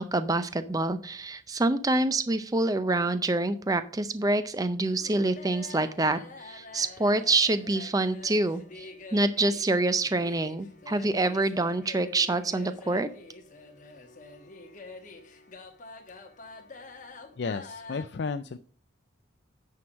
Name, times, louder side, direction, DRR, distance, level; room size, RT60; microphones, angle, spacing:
voice 1, 0.0-13.1, right 2 dB, 20° right, 12 dB, 0.5 m, -26 dB
sound 1, 4.8-18.0, left 3 dB, 40° left, 1.2 m, -47 dB
voice 2, 17.4-18.6, left 4 dB, 55° left, 11 dB, 0.4 m, -33 dB
9.5 x 4.6 x 6.2 m, 0.43 s
head